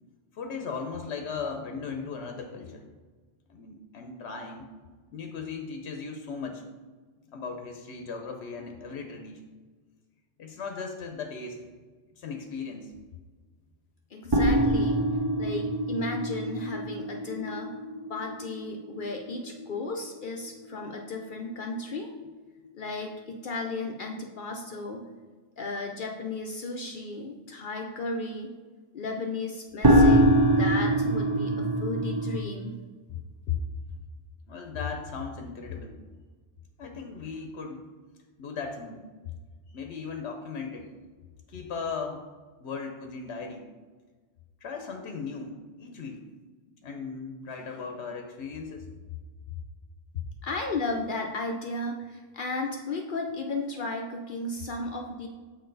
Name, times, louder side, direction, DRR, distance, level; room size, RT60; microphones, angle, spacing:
voice 1, 0.3-2.8 3.5-4.7 5.1-6.6 7.3-9.4 10.4-11.6 12.2-12.9 33.1-33.2 33.5-33.6 34.5-36.0 36.8-37.8 38.4-39.0 39.7-40.9 41.5-42.2 42.6-43.7 44.6-46.2 46.8-48.9 49.5-49.6 50.1-50.2, left 5 dB, 90° left, 4 dB, 1.0 m, -37 dB
voice 2, 14.1-15.0 15.4-17.8 18.1-22.1 22.7-25.1 25.6-28.5 28.9-32.8 50.4-55.3, left 2 dB, 55° left, 1 dB, 0.7 m, -34 dB
sound 1, 14.3-20.9 21.2-21.3 21.7-21.8 29.8-32.4, right 1 dB, 25° right, 0.6 m, -24 dB
6.6 x 4.6 x 3.9 m, 1.4 s
omnidirectional pair, 1.1 m